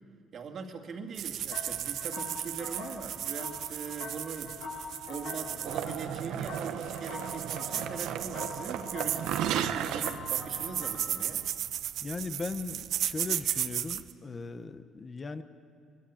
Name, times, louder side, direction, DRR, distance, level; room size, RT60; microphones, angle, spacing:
voice 1, 0.3-11.4, right 5 dB, 40° right, 3 dB, 2.4 m, -42 dB
sound 1, 1.1-14.1, right 11 dB, 60° right, 0.8 m, -35 dB
sound 2, 1.5-11.4, left 4 dB, 80° left, 4.4 m, -44 dB
sound 3, 5.6-11.0, right 10 dB, 90° right, 1.1 m, -35 dB
voice 2, 12.0-15.4, left 4 dB, 20° left, 10 dB, 1.1 m, -38 dB
24.0 x 22.5 x 8.7 m, 2.5 s
cardioid pair, 155°, 0 cm